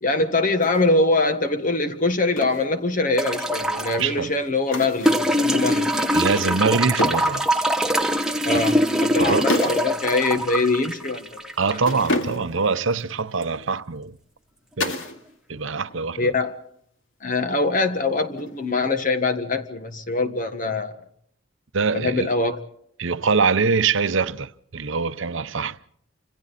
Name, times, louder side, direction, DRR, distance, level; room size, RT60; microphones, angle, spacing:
voice 1, 0.0-5.9 8.4-11.8 16.2-16.6 17.2-20.9 21.9-22.6, left 3 dB, 40° left, 1.6 m, -23 dB
sound 1, 0.6-0.8 2.4-2.7 4.7-5.3 7.0-7.4 9.5-9.9 10.2-10.3 11.8-12.7 14.8-15.2 15.5-16.0 18.4-18.8, left 1 dB, 70° left, 2.4 m, -28 dB
sound 2, 3.2-4.0 5.1-12.1 13.4-13.5, equal, 5° right, 1.2 m, -23 dB
voice 2, 4.0-4.3 6.1-7.5 9.2-9.5 11.6-14.2 14.8-15.0 15.5-16.3 21.7-22.3 23.0-25.8, right 4 dB, 70° right, 0.8 m, -23 dB
28.5 x 26.5 x 4.2 m
head